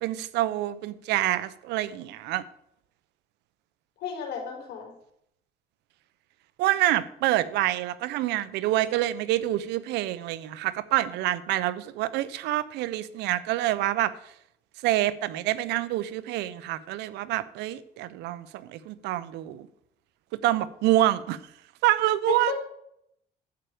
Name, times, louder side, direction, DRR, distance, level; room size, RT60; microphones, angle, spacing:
voice 1, 0.0-2.4 6.6-14.1 14.8-19.7 20.4-21.4 21.8-22.5, right 14 dB, 85° right, 16 dB, 0.8 m, -27 dB
voice 2, 4.0-4.9 22.5-22.6, left 7 dB, 75° left, 2 dB, 4.2 m, -34 dB
11.5 x 9.0 x 5.0 m, 0.75 s
cardioid pair, 110°, 17 cm